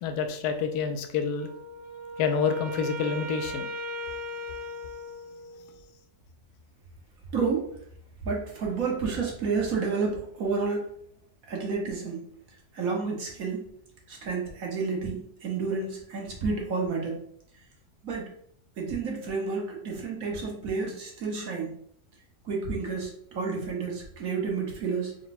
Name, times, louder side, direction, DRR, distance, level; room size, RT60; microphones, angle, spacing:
voice 1, 0.0-1.5 2.2-3.7, left 6 dB, 85° left, 6 dB, 1.1 m, -28 dB
Wind instrument woodwind instrument, 1.3-5.7, left 2 dB, 40° right, 0.9 m, -37 dB
voice 2, 7.3-7.7 8.2-10.9 11.4-12.3 12.7-13.7 14.1-17.2 18.0-18.3 18.8-21.8 22.4-25.2, right 4 dB, 65° right, -1 dB, 1.4 m, -30 dB
4.5 x 2.2 x 4.1 m, 0.66 s
omnidirectional pair, 1.6 m